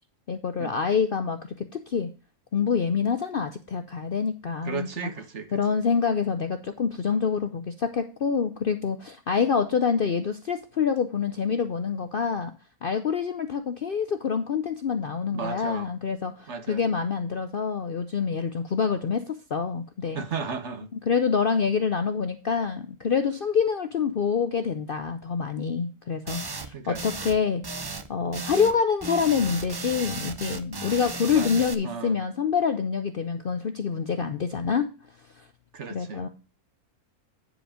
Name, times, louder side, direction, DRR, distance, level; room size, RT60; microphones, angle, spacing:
voice 1, 0.3-1.4 1.7-2.1 2.5-5.1 5.5-12.5 12.8-20.2 21.1-27.6 28.1-34.9 35.4-35.5 35.9-36.3, left 6 dB, 55° left, 0.6 m, -26 dB
voice 2, 4.6-5.6 15.3-15.9 16.5-16.8 20.1-20.9 26.7-27.0 31.3-32.2 35.7-36.3, right 6 dB, 55° right, 1.3 m, -35 dB
sound 1, 26.3-26.7 26.9-27.4 27.6-28.1 28.3-28.8 29.0-31.7, right 3 dB, 40° right, 0.3 m, -35 dB
9.8 x 5.1 x 5.0 m
omnidirectional pair, 1.6 m